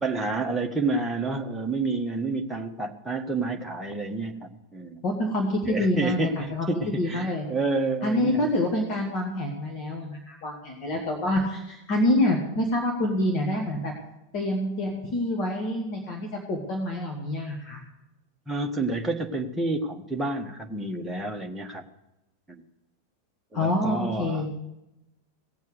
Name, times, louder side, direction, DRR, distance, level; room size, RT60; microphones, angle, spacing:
voice 1, 0.0-5.0 5.6-8.5 18.5-21.8 22.5-22.6 23.5-24.4, right 3 dB, 5° right, 1 dB, 1.4 m, -29 dB
voice 2, 5.0-6.7 7.0-7.5 8.0-13.9 14.3-17.8 23.5-24.5, left 1 dB, 40° left, 2 dB, 2.0 m, -27 dB
17.0 x 7.3 x 8.2 m, 0.93 s
figure-of-eight pair, 90°, 0 cm